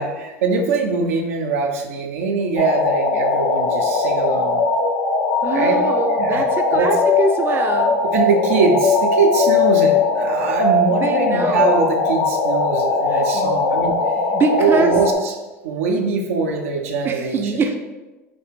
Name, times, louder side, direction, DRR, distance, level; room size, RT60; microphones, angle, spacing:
voice 1, 0.0-4.6 5.5-5.8 6.2-6.4 6.7-6.9 8.1-14.2 14.6-15.3 15.6-17.8, right 4 dB, 85° right, 3 dB, 0.6 m, -22 dB
sound 1, 2.6-15.1, left 3 dB, 85° left, 0.6 m, -19 dB
voice 2, 5.4-8.0 10.9-11.7 13.1-13.5 14.2-14.9 17.0-17.8, right 4 dB, 30° right, 5 dB, 0.4 m, -23 dB
5.1 x 2.4 x 3.3 m, 1.1 s
hypercardioid pair, 95°, 8 cm